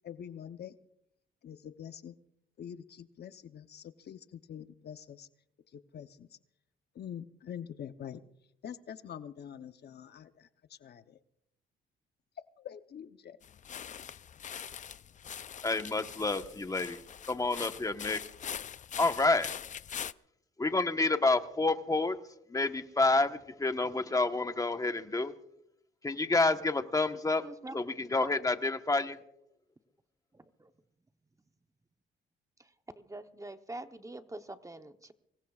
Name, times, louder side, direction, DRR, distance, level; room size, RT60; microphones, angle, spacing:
voice 1, 0.0-0.7 1.4-2.2 2.6-5.3 5.7-6.4 6.9-8.2 8.6-11.2 12.6-13.4, left 9 dB, 55° left, 10 dB, 0.8 m, -45 dB
sound 1, 13.4-20.1, left 8 dB, 40° left, 0.5 m, -43 dB
voice 2, 15.6-17.0 17.3-18.2 19.0-19.5 20.6-22.2 22.5-25.3 26.0-27.4 27.7-29.2, left 3 dB, 15° left, 8 dB, 1.2 m, -29 dB
voice 3, 27.4-27.8 28.2-28.3 30.3-30.7 32.6-35.1, right 2 dB, 15° right, 8 dB, 0.9 m, -45 dB
24.5 x 20.5 x 2.4 m, 0.77 s
cardioid pair, 90°, 20 cm